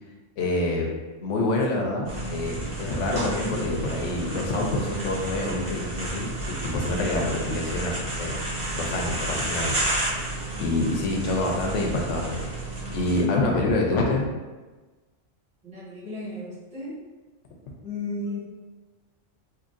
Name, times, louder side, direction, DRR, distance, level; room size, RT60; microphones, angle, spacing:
voice 1, 0.4-0.9 1.2-8.3 8.7-12.5 12.9-14.3, left 2 dB, 70° left, 0 dB, 1.0 m, -27 dB
sound 1, 2.1-13.2, right 1 dB, 25° right, 0.9 m, -31 dB
voice 2, 15.6-17.0 17.8-18.4, left 2 dB, 5° right, -12 dB, 1.3 m, -34 dB
3.8 x 2.8 x 2.5 m, 1.2 s
omnidirectional pair, 1.4 m